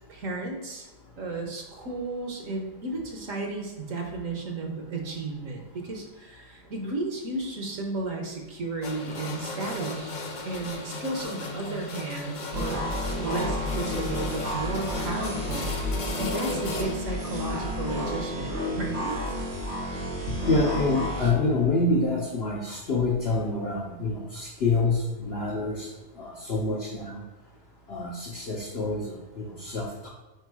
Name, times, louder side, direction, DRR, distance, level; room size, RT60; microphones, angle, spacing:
voice 1, 0.1-0.9 1.2-12.9 13.2-15.8 16.2-19.4, right 3 dB, 55° right, 2 dB, 1.2 m, -33 dB
sound 1, 8.8-16.9, left 3 dB, 70° left, 0.4 m, -35 dB
sound 2, 12.5-21.3, left 1 dB, 80° right, 2.1 m, -31 dB
voice 2, 20.5-25.9 26.2-27.2 27.9-30.1, left 3 dB, 50° left, -2 dB, 0.8 m, -27 dB
4.8 x 4.6 x 4.7 m, 1.2 s
omnidirectional pair, 1.8 m